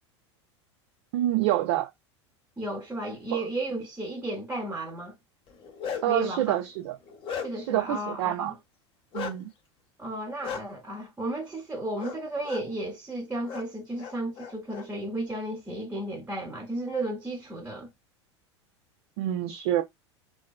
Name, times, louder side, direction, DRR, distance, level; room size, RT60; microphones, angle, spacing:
voice 1, 1.1-1.9 3.3-3.5 6.0-7.0 7.5-8.5 9.1-9.5 19.2-19.8, right 14 dB, 60° right, 0.4 m, -27 dB
voice 2, 2.6-5.1 6.1-6.6 7.4-8.6 10.0-17.9, right 1 dB, 10° right, 0.6 m, -33 dB
Bark, 5.5-6.3 6.8-7.8 9.1-9.4 10.4-10.6 12.0-12.2 12.4-12.6 13.5-13.6 14.0-14.8, left 6 dB, 35° left, 0.6 m, -36 dB
2.5 x 2.2 x 2.3 m
hypercardioid pair, 85°, 15 cm